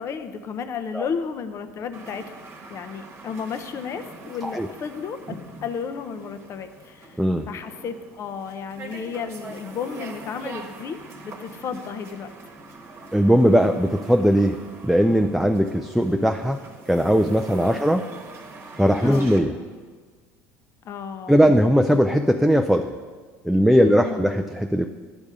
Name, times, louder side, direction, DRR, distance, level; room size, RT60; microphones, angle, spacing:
voice 1, 0.0-2.2 2.7-5.4 5.6-12.3 19.0-19.3 20.8-21.4 23.8-24.3, left 6 dB, 45° left, 9 dB, 0.6 m, -33 dB
sound 1, 1.9-19.4, right 3 dB, 40° right, 1.1 m, -42 dB
voice 2, 13.1-14.6 14.8-16.6 16.9-18.1 18.8-19.5 21.3-22.9 23.4-24.9, equal, ahead, 4 dB, 0.4 m, -19 dB
10.0 x 3.5 x 6.6 m, 1.5 s
supercardioid pair, 90°, 7 cm